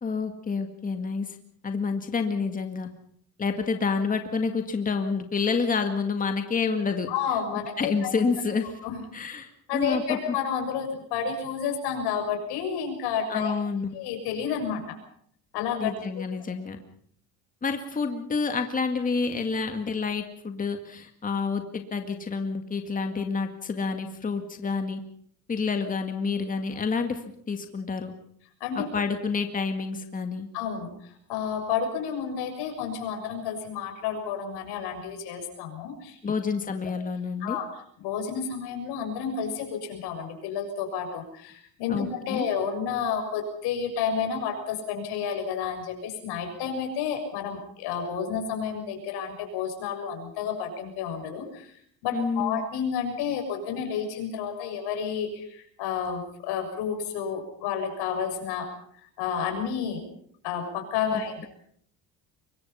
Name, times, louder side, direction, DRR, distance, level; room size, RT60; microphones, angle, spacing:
voice 1, 0.0-1.4 1.6-2.9 3.4-7.1 7.8-8.7 9.1-10.4 13.3-13.9 15.8-16.8 17.6-25.0 25.5-28.1 28.8-30.5 36.2-37.6 41.9-42.5 52.1-52.6 61.1-61.5, left 5 dB, 20° left, 6 dB, 2.0 m, -28 dB
voice 2, 7.1-8.2 8.8-9.0 9.7-13.5 13.9-15.0 15.5-15.9 28.6-28.9 30.5-36.2 37.4-37.7 38.0-58.7 59.2-60.0 60.4-61.5, left 7 dB, 85° left, 4 dB, 6.8 m, -30 dB
24.5 x 23.0 x 5.7 m, 0.63 s
cardioid pair, 145°, 39 cm